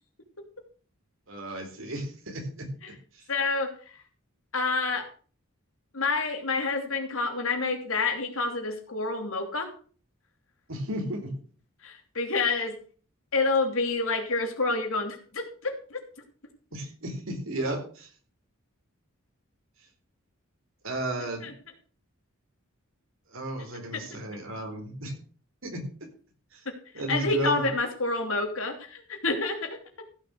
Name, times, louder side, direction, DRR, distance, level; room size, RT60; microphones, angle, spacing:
voice 1, 1.3-2.7 3.1-3.3 10.7-11.3 16.7-18.1 20.8-21.5 23.3-25.1 25.6-25.8 26.5-26.6 26.9-27.7, right 1 dB, 75° right, 3 dB, 4.2 m, -33 dB
voice 2, 3.3-3.7 4.5-5.1 5.9-9.7 11.8-12.8 13.3-16.0 21.4-21.5 23.9-24.1 26.9-29.8, left 3 dB, 75° left, 4 dB, 2.9 m, -28 dB
15.0 x 6.7 x 6.5 m, 0.42 s
head